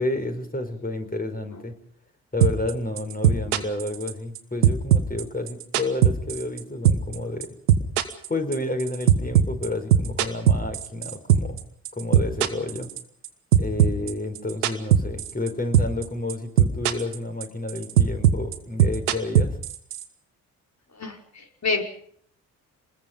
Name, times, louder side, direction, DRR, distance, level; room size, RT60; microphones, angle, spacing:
voice 1, 0.0-1.8 2.3-7.5 8.3-11.6 11.9-12.9 13.6-19.6, left 2 dB, 20° left, 6 dB, 5.3 m, -30 dB
sound 1, 2.4-2.7 3.0-4.4 4.6-6.6 6.9-7.2 7.4-11.6 11.9-13.3 13.5-15.5 15.7-16.0 16.3-17.2 17.4-20.0, right 10 dB, 80° right, 1.4 m, -19 dB
voice 2, 20.9-21.8, left 4 dB, 35° left, 3 dB, 5.2 m, -28 dB
26.5 x 21.0 x 5.5 m, 0.63 s
figure-of-eight pair, 40°, 44 cm